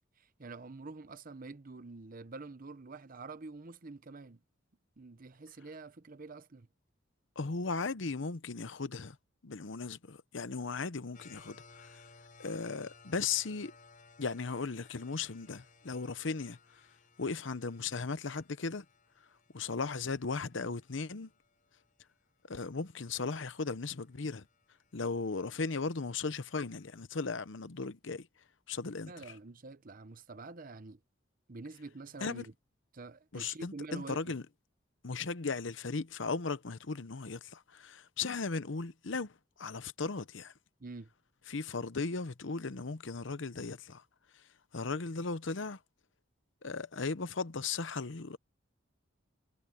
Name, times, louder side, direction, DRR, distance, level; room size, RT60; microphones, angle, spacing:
voice 1, 0.2-4.4 5.0-6.7 29.1-31.0 31.5-32.5 32.9-34.3 40.8-41.1, right 3 dB, 45° right, 0.8 m, -47 dB
voice 2, 7.4-9.2 9.4-11.9 12.4-13.7 14.2-16.6 17.2-18.8 19.5-21.3 22.5-24.4 24.9-28.3 28.7-29.1 32.2-32.5 33.3-34.4 35.0-39.3 39.6-40.5 41.5-44.0 44.7-45.8 46.6-48.4, left 4 dB, 65° left, 0.8 m, -37 dB
sound 1, 11.1-22.1 22.6-22.7 23.2-26.9, left 4 dB, 45° left, 7.8 m, -61 dB
head